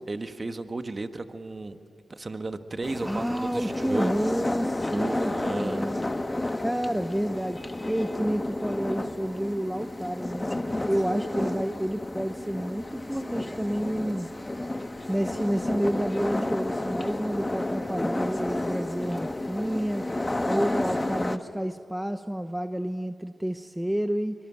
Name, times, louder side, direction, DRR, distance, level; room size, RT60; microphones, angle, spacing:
voice 1, 0.1-1.8 2.1-4.2 4.9-5.9, right 2 dB, 40° right, 8 dB, 1.5 m, -34 dB
sound 1, 2.8-21.4, left 1 dB, 25° left, 1.3 m, -31 dB
voice 2, 3.0-6.0 6.6-7.6 7.9-10.4 10.9-14.3 15.1-20.0 20.5-24.3, equal, 5° right, 9 dB, 0.9 m, -29 dB
24.5 x 22.0 x 9.1 m, 2.4 s
cardioid pair, 45°, 0 cm